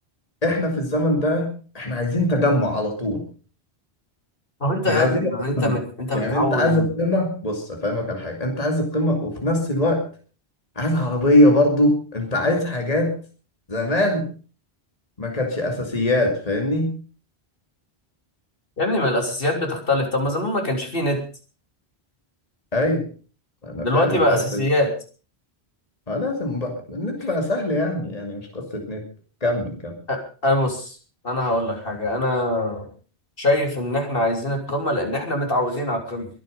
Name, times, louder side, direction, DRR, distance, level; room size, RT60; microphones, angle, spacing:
voice 1, 0.4-3.2 4.8-5.8 6.1-10.0 10.8-13.2 13.7-14.3 15.2-16.9 22.7-23.1 23.6-24.6 26.1-29.0 29.4-29.9, left 1 dB, 35° left, 2 dB, 2.8 m, -22 dB
voice 2, 4.6-6.9 18.8-21.2 23.8-24.9 30.1-31.0 31.2-32.9 33.4-36.3, left 1 dB, 60° left, 3 dB, 3.6 m, -23 dB
23.0 x 9.2 x 5.3 m, 0.38 s
omnidirectional pair, 1.1 m